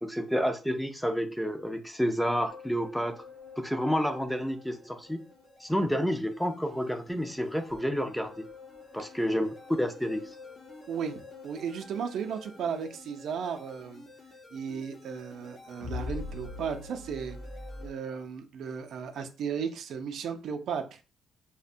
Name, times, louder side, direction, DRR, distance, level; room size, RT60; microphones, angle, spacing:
voice 1, 0.0-3.2 3.6-5.2 5.6-8.4 8.9-10.3, equal, 5° left, 7 dB, 0.4 m, -29 dB
sound 1, 2.5-17.9, left 3 dB, 50° left, 0.7 m, -46 dB
voice 2, 10.9-14.0 14.5-17.4 17.8-21.0, right 7 dB, 70° right, 6 dB, 0.4 m, -35 dB
2.7 x 2.1 x 2.5 m, 0.33 s
cardioid pair, 90°, 0 cm